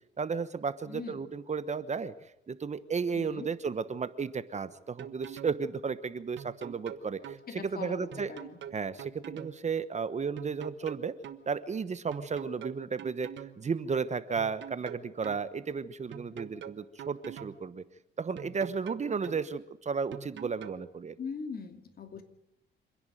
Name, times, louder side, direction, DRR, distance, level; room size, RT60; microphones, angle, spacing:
voice 1, 0.2-2.1 2.5-8.3 8.7-11.2 11.5-17.8 18.2-21.2, right 5 dB, 35° right, 13 dB, 1.1 m, -34 dB
voice 2, 0.9-1.3 3.1-3.5 7.5-8.6 21.2-22.2, left 5 dB, 50° left, 6 dB, 2.8 m, -41 dB
sound 1, 4.7-5.6 6.4-7.4 8.1-9.6 10.4-11.4 12.1-13.6 14.4-15.4 16.1-17.6 18.4-19.4 20.1-20.8, right 9 dB, 65° right, 1.4 m, -44 dB
27.0 x 10.5 x 9.2 m, 0.82 s
cardioid pair, 90°, 20 cm